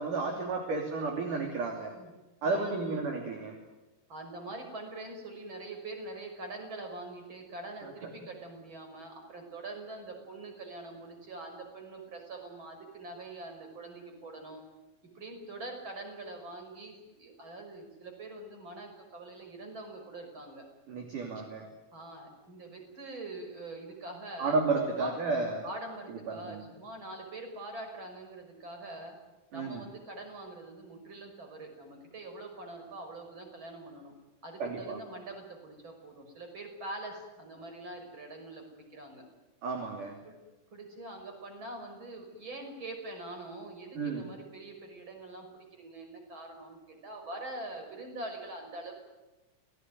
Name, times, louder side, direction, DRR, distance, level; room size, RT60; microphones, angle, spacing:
voice 1, 0.0-1.9 2.4-3.5 7.8-8.1 20.9-21.6 24.4-25.6 26.3-26.6 29.5-29.8 34.6-35.0 39.6-40.2 44.0-44.3, right 3 dB, 45° right, 2 dB, 4.1 m, -32 dB
voice 2, 2.4-3.1 4.1-14.6 15.1-20.6 21.4-21.5 21.9-24.6 24.9-25.2 25.6-29.2 29.5-34.1 34.4-39.2 40.2-40.4 40.7-48.9, right 2 dB, 25° right, 4 dB, 6.1 m, -44 dB
29.0 x 19.0 x 9.5 m, 1.1 s
omnidirectional pair, 5.8 m